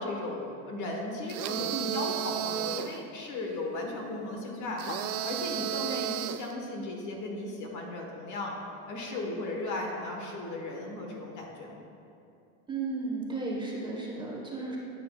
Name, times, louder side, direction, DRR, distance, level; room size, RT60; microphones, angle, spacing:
voice 1, 0.0-8.5 8.9-11.8, left 2 dB, 40° left, 1 dB, 1.3 m, -36 dB
sound 1, 1.3-3.0 4.8-6.5, right 13 dB, 85° right, 0.5 m, -33 dB
voice 2, 12.7-14.8, right 3 dB, 10° right, -4 dB, 1.1 m, -34 dB
9.5 x 9.3 x 2.3 m, 2.6 s
supercardioid pair, 130°, 43 cm